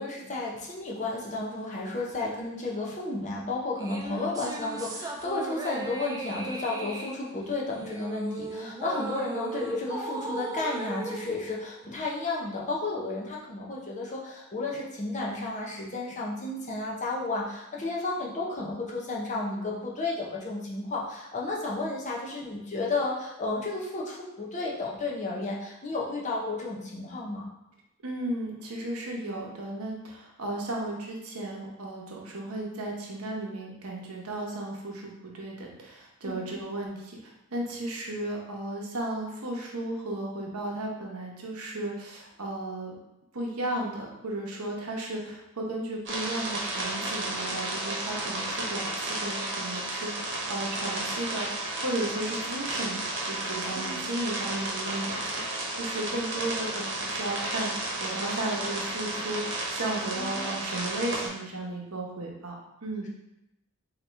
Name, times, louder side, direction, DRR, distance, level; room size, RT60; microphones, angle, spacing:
voice 1, 0.0-27.4 36.2-36.6 53.7-54.0 60.2-60.5, left 2 dB, 35° left, -3 dB, 0.7 m, -32 dB
sound 1, 3.8-12.4, right 3 dB, 15° right, 0.3 m, -37 dB
voice 2, 28.0-42.9 43.3-63.1, right 1 dB, 75° right, -1 dB, 0.9 m, -35 dB
sound 2, 46.0-61.3, right 2 dB, 55° right, 1.0 m, -33 dB
4.0 x 2.9 x 3.3 m, 0.87 s
head